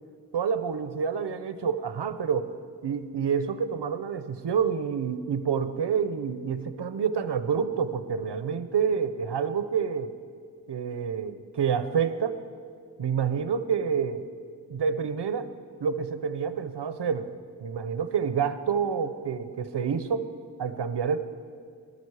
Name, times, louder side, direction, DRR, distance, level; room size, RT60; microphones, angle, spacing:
voice 1, 0.3-2.5 2.8-10.1 10.7-12.4 13.0-14.3 14.7-15.5 15.8-17.3 17.6-20.3 20.6-21.2, right 6 dB, 85° right, 11 dB, 0.9 m, -28 dB
21.5 x 13.0 x 4.9 m, 2.2 s
wide cardioid pair, 105°, 41 cm